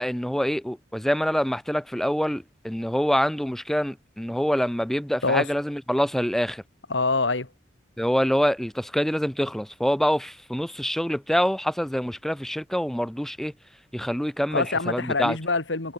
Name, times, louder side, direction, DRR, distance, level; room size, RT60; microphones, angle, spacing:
voice 1, 0.0-6.6 8.0-13.5 13.9-15.4, equal, ahead, 0.5 m, -25 dB
voice 2, 6.9-7.5 14.5-15.9, left 3 dB, 90° left, 2.3 m, -25 dB
head